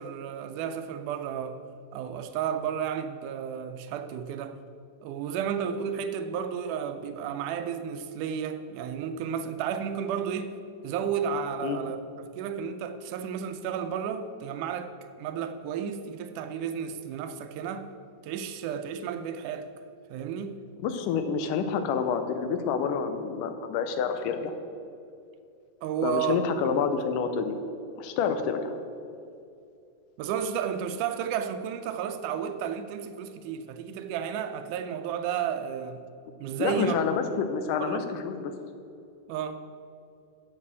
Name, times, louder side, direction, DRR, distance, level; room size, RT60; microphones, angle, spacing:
voice 1, 0.0-1.6 1.9-4.6 5.0-17.9 18.2-19.7 20.1-20.6 25.8-26.4 30.2-36.0 36.4-37.0 37.8-38.0 39.3-39.6, right 8 dB, 80° right, 2.0 m, -32 dB
voice 2, 20.8-24.5 26.0-27.6 28.0-28.8 36.6-38.5, left 6 dB, 85° left, 2.2 m, -28 dB
7.5 x 6.8 x 7.4 m
omnidirectional pair, 3.8 m